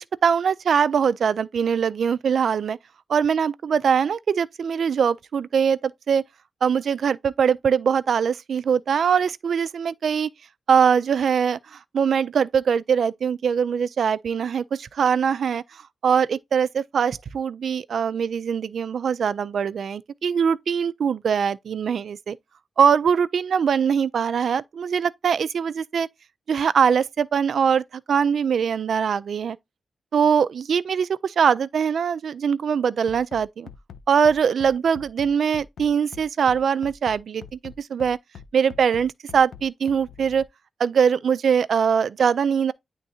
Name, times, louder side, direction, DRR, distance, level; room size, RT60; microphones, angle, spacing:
voice 1, 0.0-2.8 3.1-6.2 6.6-10.3 10.7-22.4 22.8-26.1 26.5-29.6 30.1-33.7 34.1-38.2 38.5-40.5 40.8-42.7, right 7 dB, 60° right, 0.3 m, -22 dB
Bass drum, 33.1-40.5, left 7 dB, 85° left, 0.5 m, -43 dB
9.7 x 3.5 x 2.7 m
wide cardioid pair, 160°, 0 cm